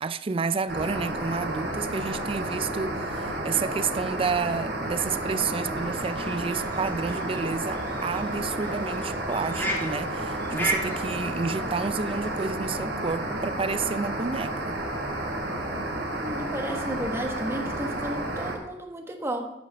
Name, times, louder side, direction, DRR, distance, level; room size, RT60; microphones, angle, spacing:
voice 1, 0.0-14.8, right 5 dB, 30° right, 0.4 m, -30 dB
sound 1, 0.7-18.5, right 1 dB, 75° right, 3.0 m, -31 dB
sound 2, 5.8-12.4, right 1 dB, 10° left, 2.0 m, -36 dB
voice 2, 16.2-19.5, right 1 dB, 15° right, 1.3 m, -33 dB
9.8 x 5.6 x 6.9 m
head